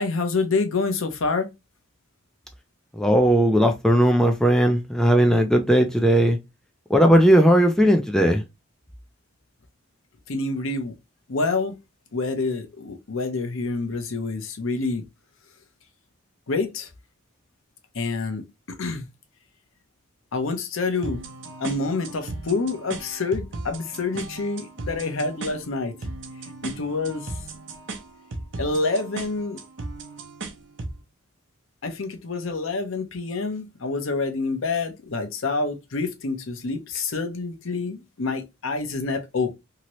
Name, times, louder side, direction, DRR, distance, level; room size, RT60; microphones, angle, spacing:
voice 1, 0.0-1.5 10.3-10.9 11.3-11.8 12.1-15.0 16.5-16.9 17.9-19.1 20.3-21.2 21.6-25.9 26.6-27.3 28.6-29.6 31.8-39.5, left 3 dB, 75° left, 0.7 m, -27 dB
voice 2, 3.0-6.4 6.9-8.4, equal, 5° left, 0.3 m, -17 dB
sound 1, 21.0-31.0, right 2 dB, 60° right, 0.7 m, -37 dB
2.8 x 2.7 x 3.0 m
head